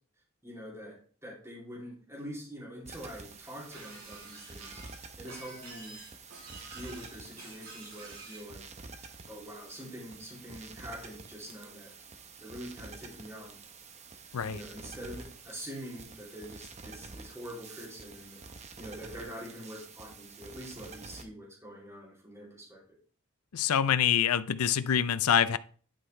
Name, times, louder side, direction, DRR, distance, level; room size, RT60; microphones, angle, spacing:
voice 1, 0.4-4.8 5.2-6.0 6.6-8.6 9.3-11.9 12.4-13.6 14.5-18.4 18.8-22.8, equal, 15° right, -4 dB, 3.0 m, -45 dB
sound 1, 2.8-21.2, right 4 dB, 30° right, 0.8 m, -49 dB
Shatter, 3.7-8.5, right 3 dB, 70° right, 3.9 m, -49 dB
voice 2, 23.5-25.6, left 8 dB, 80° left, 15 dB, 0.5 m, -26 dB
11.0 x 5.7 x 3.3 m, 0.42 s
head